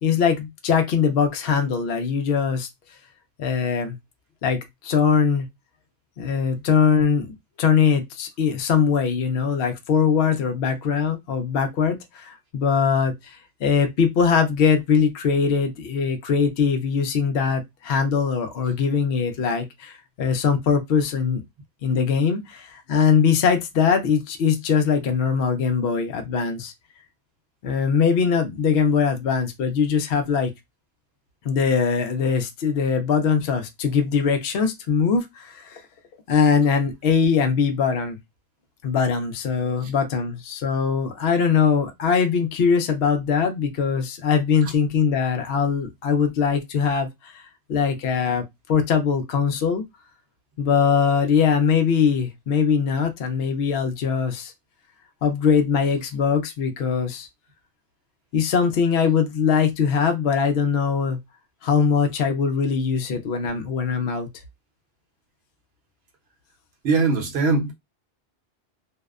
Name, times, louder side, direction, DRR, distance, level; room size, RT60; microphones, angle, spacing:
voice 1, 0.0-2.7 3.4-4.0 4.4-5.5 6.2-7.3 7.6-21.4 21.8-26.7 27.6-30.5 31.4-35.8 36.3-38.2 38.8-47.4 47.7-48.4 48.7-49.8 50.6-54.5 55.2-57.3 58.3-61.2 61.6-64.3, left 6 dB, 65° left, 0.7 m, -21 dB
voice 2, 66.8-67.7, right 4 dB, 65° right, 1.0 m, -21 dB
2.6 x 2.1 x 2.3 m
omnidirectional pair, 1.1 m